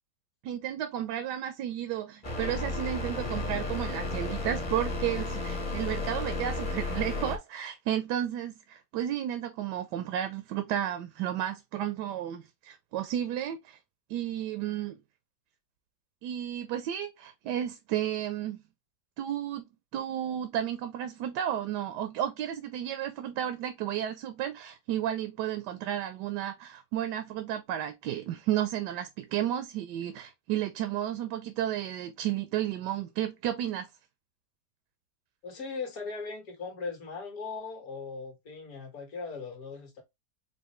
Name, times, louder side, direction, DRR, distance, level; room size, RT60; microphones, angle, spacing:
voice 1, 0.4-13.8 14.1-15.0 16.2-18.6 19.2-19.7 19.9-33.9, right 11 dB, 80° right, 1.2 m, -32 dB
sound 1, 2.2-7.4, left 2 dB, 25° left, 0.8 m, -33 dB
voice 2, 35.4-40.0, left 4 dB, 60° left, 1.7 m, -39 dB
4.7 x 2.6 x 3.0 m
omnidirectional pair, 1.8 m